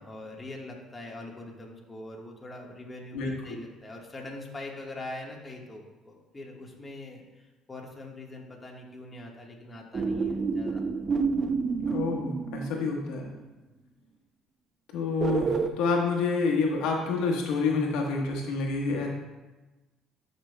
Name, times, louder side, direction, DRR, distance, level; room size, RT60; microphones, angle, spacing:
voice 1, 0.0-10.8, left 2 dB, 20° left, -1 dB, 1.4 m, -43 dB
voice 2, 3.1-3.6 11.9-13.3 14.9-19.1, left 4 dB, 85° left, 0 dB, 1.2 m, -28 dB
sound 1, 9.9-13.1 15.2-15.7, right 4 dB, 40° right, 0.4 m, -29 dB
11.0 x 5.3 x 2.2 m, 1.1 s
supercardioid pair, 85°, 0 cm